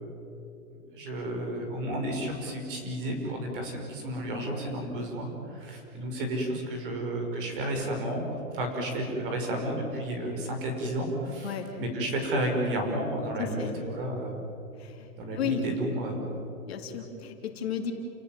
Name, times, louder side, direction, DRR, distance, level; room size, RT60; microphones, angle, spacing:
voice 1, 0.7-14.4 15.2-16.3, right 1 dB, 40° right, 2 dB, 5.6 m, -32 dB
voice 2, 13.4-13.8 14.8-15.1 15.4-15.7 16.7-17.9, left 7 dB, 45° left, 3 dB, 2.8 m, -33 dB
30.0 x 18.0 x 7.5 m, 2.7 s
hypercardioid pair, 170°, 43 cm